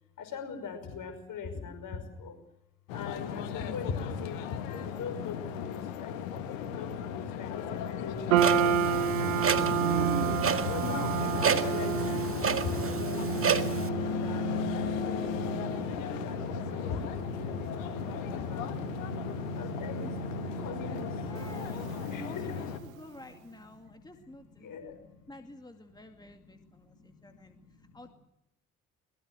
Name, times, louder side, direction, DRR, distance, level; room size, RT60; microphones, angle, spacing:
voice 1, 0.2-2.4 2.9-9.2 10.6-13.8 14.1-15.3 15.6-18.7 19.5-21.3 21.6-25.5 25.9-28.1, left 5 dB, 50° left, 8 dB, 5.6 m, -42 dB
sound 1, 2.9-22.8, left 8 dB, 75° left, 1.7 m, -36 dB
sound 2, 8.3-22.7, right 8 dB, 80° right, 1.3 m, -32 dB
Clock, 8.4-13.9, right 7 dB, 35° right, 1.9 m, -31 dB
voice 2, 21.1-21.8 22.1-24.7 25.3-27.5 27.9-28.1, left 1 dB, 10° left, 6 dB, 2.4 m, -50 dB
23.0 x 21.0 x 7.7 m, 0.83 s
figure-of-eight pair, 50°, 40 cm